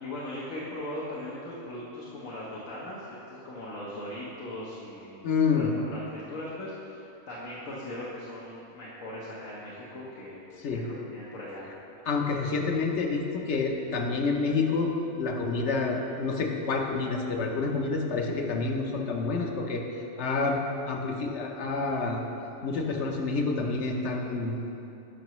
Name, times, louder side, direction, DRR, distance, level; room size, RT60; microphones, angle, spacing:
voice 1, 0.0-10.5 10.7-11.7, left 1 dB, 85° left, -7 dB, 1.4 m, -39 dB
voice 2, 5.2-5.7 10.6-10.8 12.1-14.9 15.2-19.8 20.2-20.6 20.9-22.2 22.6-24.6, left 4 dB, 65° left, 1 dB, 1.0 m, -28 dB
11.5 x 5.7 x 3.0 m, 2.8 s
omnidirectional pair, 1.3 m